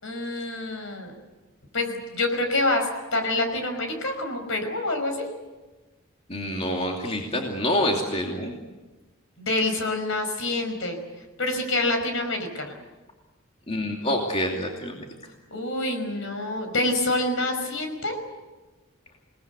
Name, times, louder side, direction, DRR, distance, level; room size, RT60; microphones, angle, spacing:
voice 1, 0.0-1.1 1.7-5.3 9.4-11.0 11.4-12.7 15.5-18.2, left 2 dB, 65° left, 6 dB, 5.4 m, -27 dB
voice 2, 6.3-8.5 13.7-15.0, left 1 dB, 30° left, 0 dB, 2.8 m, -27 dB
28.0 x 19.5 x 8.3 m, 1.2 s
head